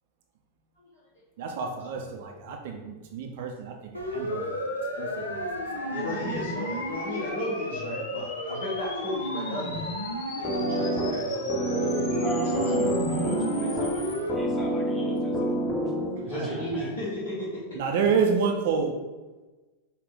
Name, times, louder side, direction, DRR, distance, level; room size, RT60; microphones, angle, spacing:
voice 1, 1.4-5.9 6.2-6.4 16.4-16.7 17.7-19.0, right 5 dB, 50° right, 3 dB, 0.5 m, -29 dB
Siren, 3.9-14.3, equal, 85° left, 0.6 m, -33 dB
sound 1, 4.3-14.2, left 4 dB, 35° left, 1.4 m, -42 dB
voice 2, 5.9-9.9 10.4-12.4 16.2-17.6, left 1 dB, 55° left, -7 dB, 1.1 m, -35 dB
sound 2, 10.4-16.4, right 1 dB, 15° left, 0.8 m, -28 dB
voice 3, 12.0-15.6 16.2-16.9, right 2 dB, ahead, -3 dB, 1.1 m, -39 dB
4.9 x 2.4 x 3.6 m, 1.2 s
figure-of-eight pair, 90°, 0 cm